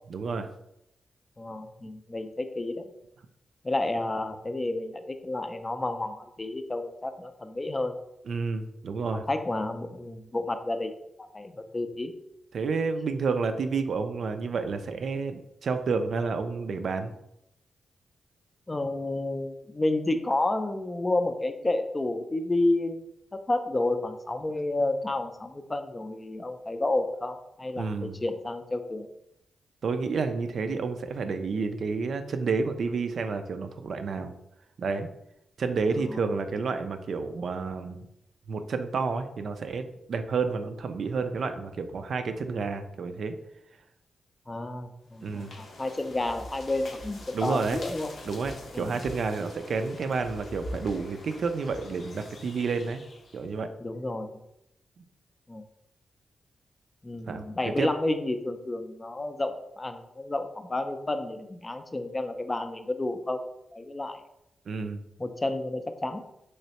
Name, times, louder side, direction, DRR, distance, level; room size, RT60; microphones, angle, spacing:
voice 1, 0.1-0.5 8.3-9.2 12.5-17.1 27.8-28.2 29.8-34.3 34.8-35.1 35.6-38.0 38.5-43.4 45.2-45.5 47.3-47.8 48.2-53.0 53.3-53.7 57.3-57.5 57.8-57.9 64.7-65.0, right 4 dB, 70° right, 8 dB, 0.3 m, -30 dB
voice 2, 1.4-2.8 3.6-7.9 9.1-10.9 11.3-12.1 18.7-23.0 23.3-29.1 36.1-36.2 44.5-48.1 48.7-49.0 53.8-54.4 55.5-55.6 57.0-63.4 63.7-64.2 65.2-66.2, left 2 dB, 25° left, 8 dB, 0.4 m, -30 dB
sound 1, 45.1-53.5, left 1 dB, 70° left, 0.6 m, -44 dB
3.2 x 3.0 x 2.8 m, 0.81 s
cardioid pair, 70°, 0 cm